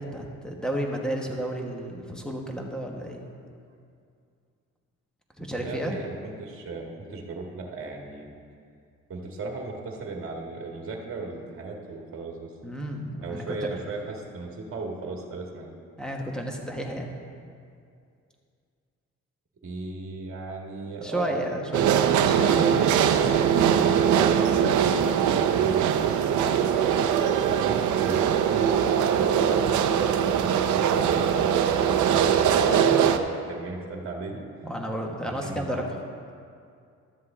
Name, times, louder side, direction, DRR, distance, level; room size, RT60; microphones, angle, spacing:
voice 1, 0.0-3.2 5.4-6.0 12.6-13.4 16.0-17.1 21.0-22.9 32.6-33.0 34.6-35.8, right 1 dB, ahead, 0 dB, 1.3 m, -32 dB
voice 2, 5.5-8.4 9.1-12.5 13.2-15.7 19.6-21.4 22.5-23.0 23.4-26.4 27.5-33.2 33.5-34.4 35.4-35.8, right 3 dB, 45° right, 0 dB, 1.6 m, -36 dB
sound 1, 21.7-33.2, right 8 dB, 75° right, 0.6 m, -22 dB
12.5 x 7.6 x 3.7 m, 2.4 s
cardioid pair, 90°, 30 cm